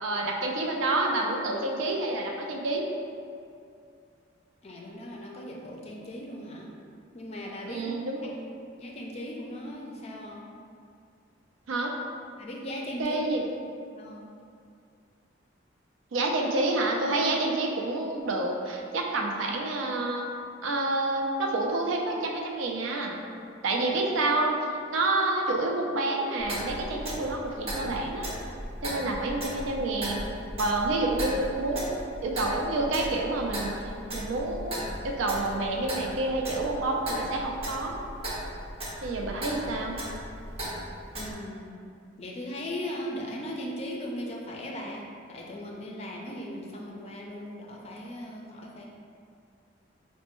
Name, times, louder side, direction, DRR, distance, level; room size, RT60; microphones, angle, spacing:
voice 1, 0.0-2.9 7.7-8.3 11.7-12.0 13.0-13.5 16.1-20.3 20.6-23.2 23.6-24.6 24.9-28.3 28.8-30.2 30.6-32.0 32.2-33.8 34.1-34.8 35.0-38.0 39.0-40.0, right 2 dB, 80° right, 1 dB, 0.4 m, -28 dB
voice 2, 4.6-6.7 7.1-8.0 8.6-10.4 12.4-13.2 13.9-14.2 41.1-41.7 42.2-45.0 45.3-48.9, equal, 30° left, -1 dB, 0.4 m, -38 dB
Clock, 26.4-41.3, right 1 dB, 30° right, 0.7 m, -37 dB
4.2 x 2.1 x 3.0 m, 2.3 s
head